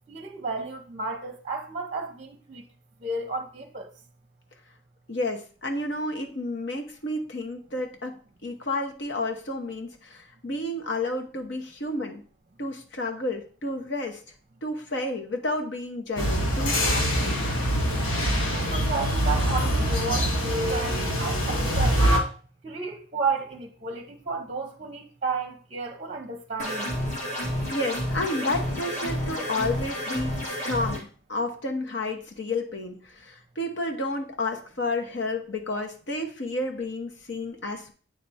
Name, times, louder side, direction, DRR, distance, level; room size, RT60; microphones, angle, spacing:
voice 1, 0.1-2.6 3.0-3.9 18.5-20.3 20.7-22.0 22.6-26.9, right 4 dB, 35° right, 0.7 m, -32 dB
voice 2, 5.1-8.2 8.4-12.2 12.6-14.2 14.6-17.4 27.7-37.9, left 2 dB, 60° left, 1.0 m, -31 dB
sound 1, 16.2-22.2, equal, 85° left, 1.4 m, -24 dB
sound 2, 26.6-31.0, equal, 35° left, 1.8 m, -30 dB
8.3 x 3.4 x 4.2 m
head